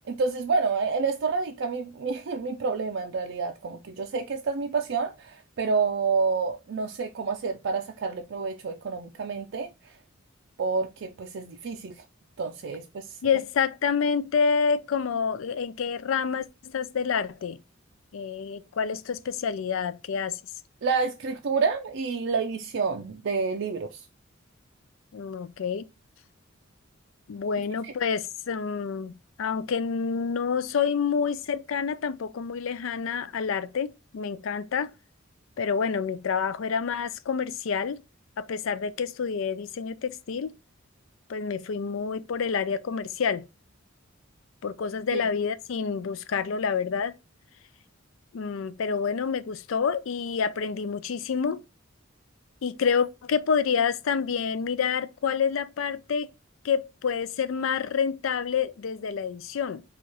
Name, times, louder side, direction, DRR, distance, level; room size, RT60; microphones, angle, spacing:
voice 1, 0.1-9.7 10.6-12.0 12.4-13.2 20.8-24.0 27.8-27.9 45.1-45.2, right 4 dB, 60° right, 0.4 m, -29 dB
voice 2, 13.2-17.6 18.1-20.4 25.1-25.9 27.3-29.1 29.4-34.9 35.6-38.0 38.4-40.5 41.3-43.4 44.6-47.1 48.3-51.6 52.6-56.3 56.6-59.8, left 6 dB, 75° left, 0.4 m, -28 dB
4.3 x 2.4 x 4.6 m
head